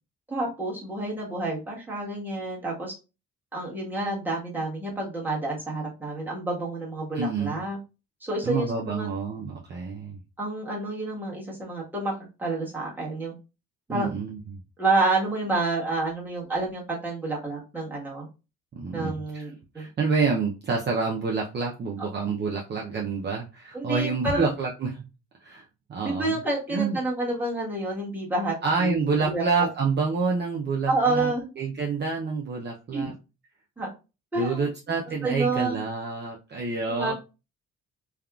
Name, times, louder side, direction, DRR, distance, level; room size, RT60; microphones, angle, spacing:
voice 1, 0.3-2.9 3.5-7.8 8.2-9.1 10.4-12.1 12.4-13.3 13.9-14.1 14.8-18.3 18.9-19.9 23.7-24.5 26.0-29.7 30.9-31.5 32.9-33.1 33.8-33.9 34.3-34.7 35.2-35.8 37.0-37.1, right 2 dB, 5° right, -5 dB, 1.3 m, -29 dB
voice 2, 7.1-7.6 8.4-10.2 13.9-14.6 18.7-19.5 19.7-25.0 25.4-25.6 25.9-26.4 26.7-27.0 28.6-33.1 34.4-37.1, right 4 dB, 35° right, -1 dB, 0.5 m, -28 dB
3.5 x 2.3 x 2.3 m, 0.30 s
cardioid pair, 90°, 30 cm